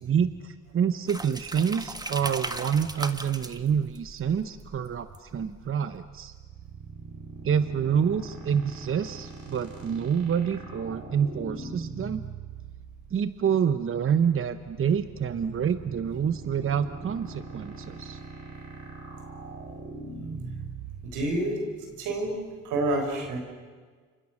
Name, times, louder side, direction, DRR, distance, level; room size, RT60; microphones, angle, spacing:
voice 1, 0.0-6.3 7.4-12.2 13.1-18.2, right 7 dB, 45° right, 11 dB, 1.0 m, -27 dB
sound 1, 1.1-5.7, right 2 dB, 15° right, 1.5 m, -38 dB
sound 2, 5.4-22.5, right 4 dB, 70° right, 7.0 m, -42 dB
voice 2, 21.0-21.6 22.0-22.3 22.6-23.4, right 1 dB, 90° right, 3 dB, 6.1 m, -28 dB
29.5 x 26.5 x 6.5 m, 1.5 s
cardioid pair, 90°, 30 cm